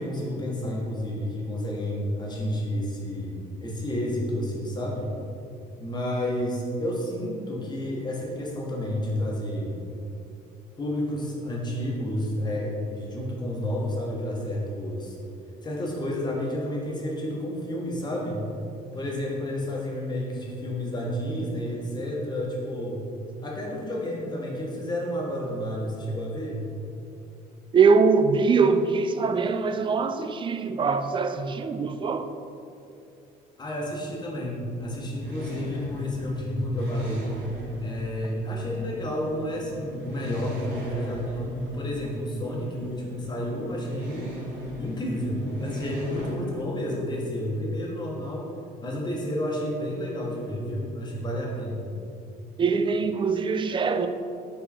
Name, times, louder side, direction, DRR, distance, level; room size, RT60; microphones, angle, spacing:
voice 1, 0.0-5.1 5.8-9.8 10.8-15.2 15.6-18.4 18.9-23.0 23.4-26.6 33.6-37.3 37.8-44.3 44.8-48.5 48.8-51.8, left 1 dB, 25° left, -3 dB, 1.3 m, -30 dB
voice 2, 27.7-32.3 52.6-54.1, right 5 dB, 30° right, 9 dB, 0.4 m, -22 dB
sound 1, 34.7-46.3, left 1 dB, 90° right, 1.3 m, -37 dB
4.9 x 4.7 x 4.3 m, 2.6 s
cardioid pair, 110°, 17 cm